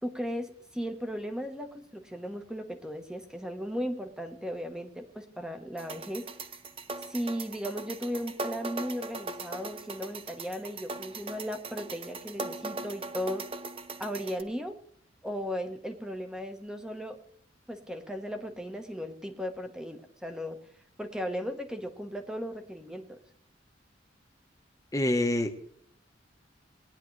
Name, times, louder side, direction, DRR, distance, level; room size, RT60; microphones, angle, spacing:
voice 1, 0.0-6.3 7.1-13.4 14.0-14.8 15.2-17.2 17.7-20.6 21.0-23.2, equal, 5° right, 5 dB, 1.1 m, -36 dB
sound 1, 5.8-14.4, right 3 dB, 30° right, 0.7 m, -40 dB
voice 2, 24.9-25.5, left 1 dB, 20° left, 6 dB, 1.1 m, -26 dB
20.0 x 10.0 x 3.2 m, 0.67 s
head